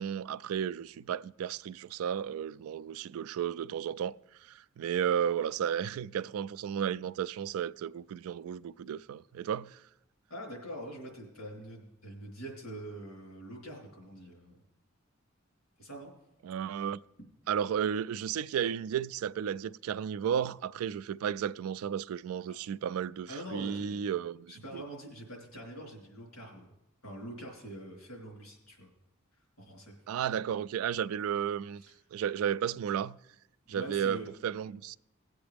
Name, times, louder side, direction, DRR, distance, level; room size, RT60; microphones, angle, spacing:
voice 1, 0.0-4.2 4.4-9.8 16.4-17.0 17.5-24.8 30.1-31.8 32.1-33.2 33.7-35.0, right 8 dB, 85° right, 0.3 m, -33 dB
voice 2, 10.3-14.6 15.8-16.1 23.3-24.1 24.5-26.7 27.0-28.9 29.6-29.9 31.9-32.0 33.7-34.3, right 1 dB, 80° left, 3.7 m, -44 dB
18.0 x 7.9 x 3.4 m
head